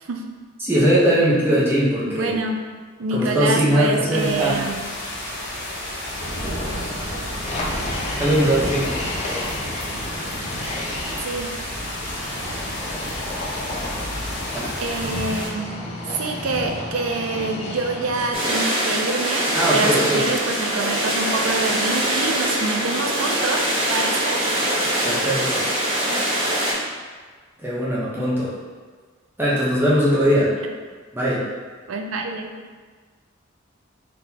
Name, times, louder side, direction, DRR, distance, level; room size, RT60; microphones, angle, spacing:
voice 1, 0.6-2.3 3.1-4.6 8.2-8.9 14.5-14.6 19.5-20.2 25.0-25.7 27.6-28.5 29.4-30.5 31.1-31.4, equal, 10° right, -8 dB, 0.9 m, -20 dB
voice 2, 2.0-2.7 3.0-4.8 11.2-11.6 14.8-15.8 16.2-24.5 24.9-25.0 31.9-32.6, right 3 dB, 90° right, 4 dB, 0.5 m, -26 dB
sound 1, 4.1-15.5, left 1 dB, 60° left, 1.2 m, -30 dB
sound 2, 7.4-11.2 12.2-18.5, left 1 dB, 35° left, 0.6 m, -32 dB
sound 3, 18.3-26.7, right 1 dB, 30° right, 1.2 m, -23 dB
3.8 x 3.7 x 2.9 m, 1.5 s
head